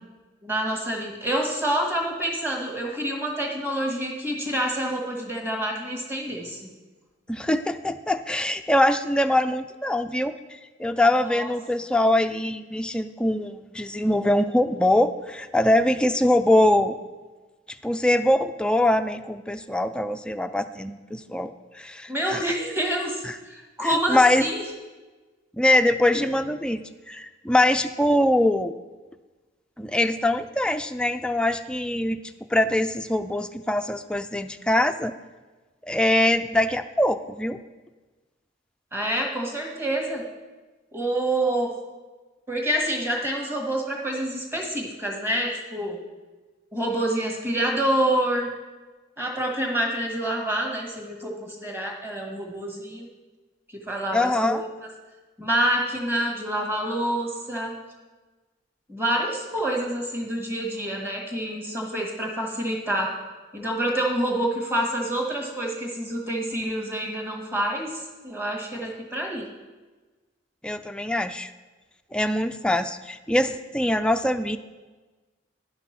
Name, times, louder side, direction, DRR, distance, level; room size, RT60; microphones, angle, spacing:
voice 1, 0.4-6.6 11.2-11.5 22.1-24.6 38.9-40.2 40.9-41.7 42.5-46.0 46.7-48.5 49.2-53.0 53.7-54.7 55.4-57.7 58.9-63.2 63.5-69.5, right 1 dB, 15° right, 1 dB, 1.6 m, -27 dB
voice 2, 7.3-10.3 10.8-17.0 17.8-21.5 21.8-22.4 23.2-23.3 23.8-24.5 25.6-28.7 29.8-32.2 32.5-35.1 35.9-37.6 54.1-54.6 70.6-71.5 72.1-74.6, left 1 dB, 5° left, 8 dB, 0.4 m, -23 dB
10.5 x 5.8 x 5.9 m, 1.3 s
head